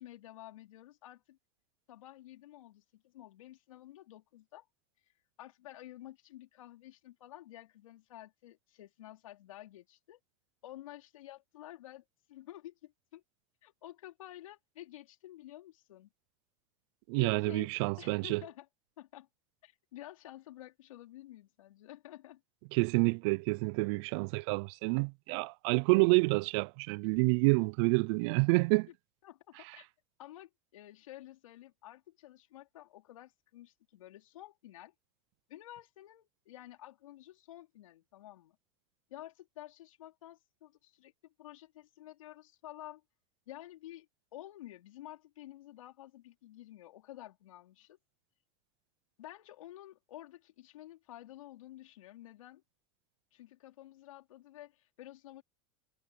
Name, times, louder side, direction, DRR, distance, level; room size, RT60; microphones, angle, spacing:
voice 1, 0.0-1.4 1.9-4.7 5.4-10.2 10.6-13.2 13.6-16.1 17.2-18.7 19.0-19.3 19.6-22.4 29.2-29.9 30.2-34.9 35.5-38.6 39.1-43.0 43.5-44.1 44.3-48.0 49.2-52.6 53.3-55.4, left 14 dB, 90° left, 4.3 m, -51 dB
voice 2, 17.1-18.4 22.7-28.9, right 30 dB, 55° right, 0.4 m, -28 dB
supercardioid pair, 135°, 17 cm